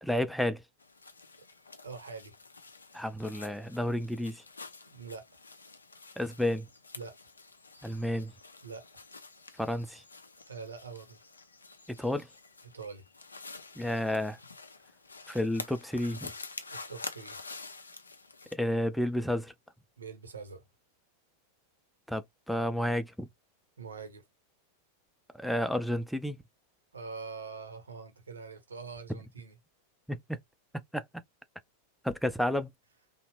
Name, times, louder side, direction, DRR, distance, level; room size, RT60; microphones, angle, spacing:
voice 1, 0.0-0.6 2.9-4.4 6.2-6.7 7.8-8.3 9.6-10.0 11.9-12.3 13.8-14.4 15.3-16.3 18.5-19.5 22.1-23.3 25.3-26.4 30.1-30.4 30.9-31.0 32.0-32.7, left 1 dB, ahead, 0.4 m, -31 dB
sound 1, 0.8-18.5, left 3 dB, 75° left, 0.4 m, -48 dB
voice 2, 1.8-2.3 4.9-5.4 6.9-7.2 8.6-8.8 10.5-11.2 12.6-13.0 16.7-17.4 20.0-20.6 23.8-24.2 26.9-29.6, right 5 dB, 70° right, 0.8 m, -44 dB
2.8 x 2.0 x 2.9 m
figure-of-eight pair, 90°, 0 cm